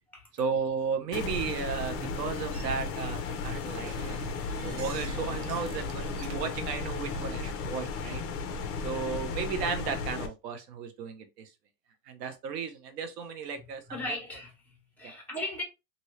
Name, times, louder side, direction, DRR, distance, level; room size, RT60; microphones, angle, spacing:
voice 1, 0.4-4.3 4.6-8.2 8.8-11.5 12.1-14.2 15.0-15.1, right 6 dB, 85° right, 1.0 m, -34 dB
sound 1, 1.1-10.3, left 4 dB, 30° left, 0.6 m, -35 dB
sound 2, 2.5-7.5, right 7 dB, 55° right, 0.7 m, -45 dB
voice 2, 13.9-15.6, left 1 dB, 5° left, 1.2 m, -37 dB
2.8 x 2.7 x 3.1 m
supercardioid pair, 135°, 47 cm